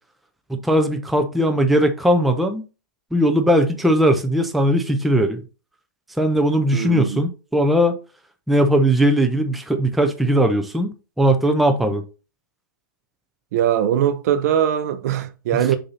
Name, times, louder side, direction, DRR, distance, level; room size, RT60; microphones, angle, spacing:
voice 1, 0.5-2.6 3.1-5.4 6.2-7.9 8.5-10.9 11.2-12.0, equal, ahead, 0.4 m, -19 dB
voice 2, 6.7-7.2 13.5-15.8, right 10 dB, 50° right, 0.7 m, -21 dB
6.8 x 2.7 x 5.5 m
hypercardioid pair, 150°, 11 cm